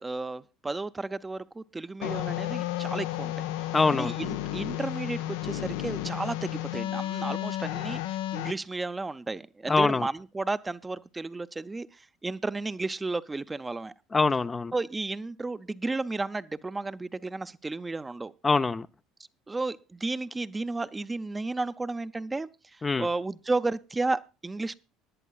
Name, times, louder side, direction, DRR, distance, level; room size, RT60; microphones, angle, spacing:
voice 1, 0.0-3.3 3.6-13.9 14.7-18.3 19.5-24.8, right 3 dB, 20° right, 0.6 m, -33 dB
sound 1, 2.0-8.5, left 14 dB, 70° left, 0.6 m, -32 dB
voice 2, 3.7-4.1 7.3-7.4 9.7-10.1 14.1-14.7 18.4-18.9 22.8-23.1, left 4 dB, 25° left, 0.5 m, -24 dB
20.5 x 11.0 x 2.4 m
hypercardioid pair, 65°, 0 cm